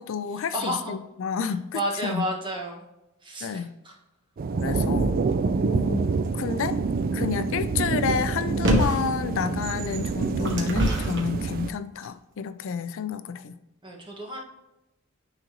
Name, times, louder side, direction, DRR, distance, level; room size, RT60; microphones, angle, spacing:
voice 1, 0.0-2.2 3.4-3.7 4.5-5.2 5.7-6.8 7.1-13.6, left 6 dB, 60° left, 12 dB, 0.4 m, -30 dB
voice 2, 0.5-0.9 1.4-2.8 3.2-3.9 13.8-14.4, right 1 dB, 25° right, -1 dB, 1.4 m, -32 dB
sound 1, 4.4-11.7, right 4 dB, 45° right, 0.4 m, -27 dB
sound 2, 8.6-9.1 9.9-11.3 12.0-12.1, equal, 60° right, 1.4 m, -24 dB
9.7 x 4.0 x 2.9 m, 0.93 s
head